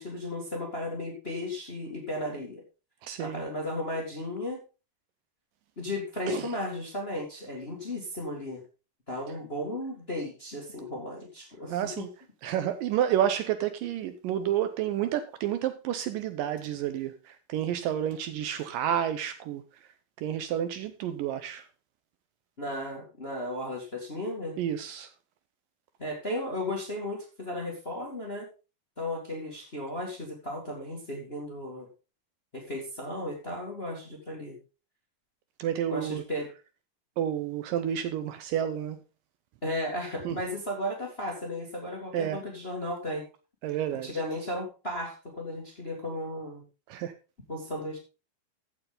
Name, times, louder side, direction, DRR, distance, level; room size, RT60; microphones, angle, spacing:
voice 1, 0.0-2.6 3.2-4.6 5.8-8.6 9.1-12.1 22.6-24.6 26.0-28.5 29.0-31.9 32.5-34.6 35.9-36.5 39.6-43.2 44.0-46.6 47.5-48.0, left 1 dB, 25° left, 0 dB, 1.4 m, -35 dB
voice 2, 3.0-3.4 6.3-6.5 11.7-12.1 12.4-19.6 20.2-21.7 24.6-25.1 35.6-36.2 37.2-39.0 40.3-40.4 42.1-42.4 43.6-44.1 46.9-47.1, right 10 dB, 75° right, 10 dB, 2.1 m, -30 dB
14.5 x 6.9 x 3.8 m, 0.32 s
omnidirectional pair, 4.4 m